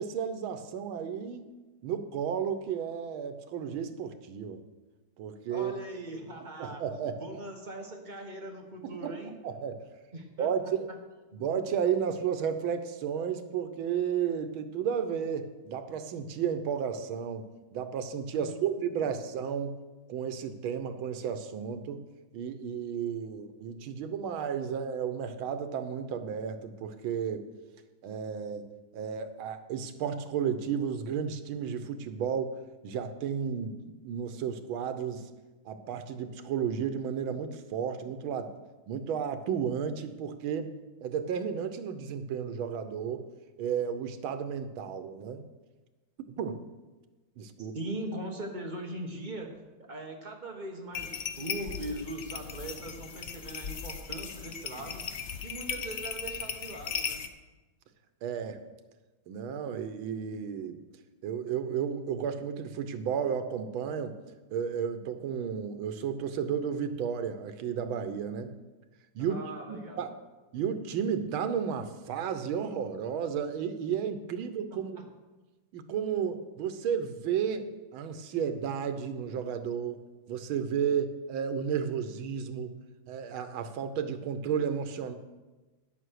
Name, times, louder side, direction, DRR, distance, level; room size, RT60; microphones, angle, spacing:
voice 1, 0.0-1.4 1.8-4.6 5.2-5.7 6.6-7.2 8.8-9.1 9.4-9.9 10.4-10.9 11.3-17.5 17.7-19.8 20.1-22.0 22.3-27.4 28.0-28.7 28.9-32.5 32.8-35.3 35.6-38.5 38.9-40.7 41.0-43.3 43.6-45.4 46.4-46.7 47.4-47.8 58.2-58.6 59.3-60.8 61.2-64.2 64.5-68.5 69.1-69.4 69.7-70.1 70.5-75.0 75.7-80.0 80.3-82.7 83.1-85.1, right 7 dB, 90° right, 9 dB, 1.7 m, -33 dB
voice 2, 5.5-9.3 10.1-11.0 18.3-18.6 47.6-49.6 49.9-55.1 55.4-57.2 69.2-70.2 74.7-75.0, right 1 dB, 25° right, 2 dB, 1.2 m, -40 dB
sound 1, 50.9-57.3, left 7 dB, 80° left, 0.5 m, -37 dB
10.0 x 7.9 x 6.4 m, 1.2 s
omnidirectional pair, 2.2 m